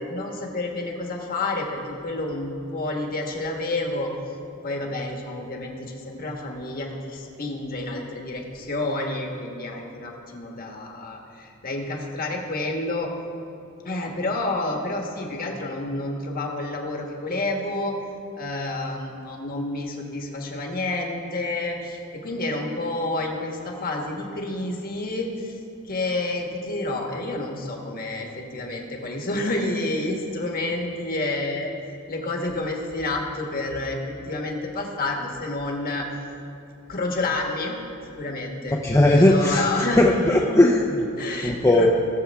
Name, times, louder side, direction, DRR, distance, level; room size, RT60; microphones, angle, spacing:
voice 1, 0.0-4.1 4.6-13.1 13.8-17.9 18.4-25.5 25.8-31.7 32.1-36.1 36.9-37.8 38.2-40.0 41.2-41.9, left 2 dB, 45° left, 1 dB, 1.4 m, -29 dB
voice 2, 38.8-41.0 41.4-41.9, left 1 dB, 15° left, -1 dB, 0.6 m, -18 dB
19.0 x 7.0 x 3.5 m, 2.7 s
head